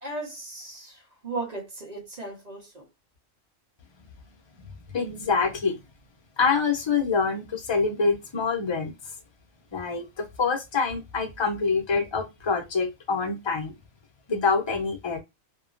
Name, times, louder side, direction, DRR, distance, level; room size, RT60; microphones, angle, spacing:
voice 1, 0.0-2.8, right 2 dB, 35° right, 1.0 m, -36 dB
voice 2, 4.6-5.8 6.4-9.1 9.7-13.7 14.3-15.2, left 4 dB, 35° left, 0.5 m, -26 dB
2.9 x 2.2 x 2.4 m
omnidirectional pair, 1.3 m